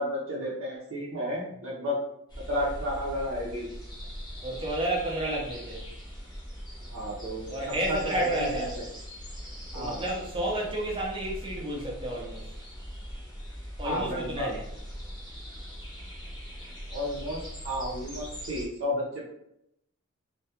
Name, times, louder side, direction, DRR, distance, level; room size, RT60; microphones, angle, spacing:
voice 1, 0.0-2.0 2.5-3.7 6.9-8.0 8.3-8.6 9.7-10.0 13.8-14.6 16.9-19.0, equal, 70° right, -6 dB, 0.6 m, -32 dB
sound 1, 2.3-18.7, equal, 20° left, 0.6 m, -41 dB
voice 2, 4.4-5.8 7.5-8.7 9.7-12.5 13.8-14.6, right 1 dB, 25° right, -3 dB, 0.5 m, -31 dB
2.2 x 2.2 x 2.8 m, 0.79 s
head